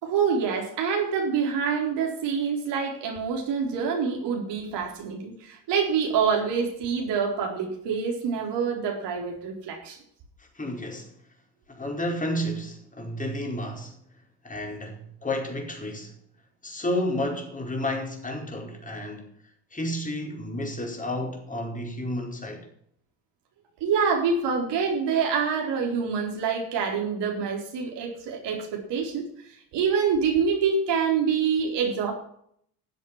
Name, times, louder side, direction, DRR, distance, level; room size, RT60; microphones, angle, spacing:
voice 1, 0.0-10.0 23.8-29.3 29.7-32.1, right 6 dB, 60° right, 4.2 m, -26 dB
voice 2, 10.4-11.1 11.7-14.0 14.4-16.1 16.6-19.3 19.7-22.7, left 1 dB, 15° left, 4.8 m, -31 dB
13.5 x 7.7 x 7.4 m
hypercardioid pair, 75°, 47 cm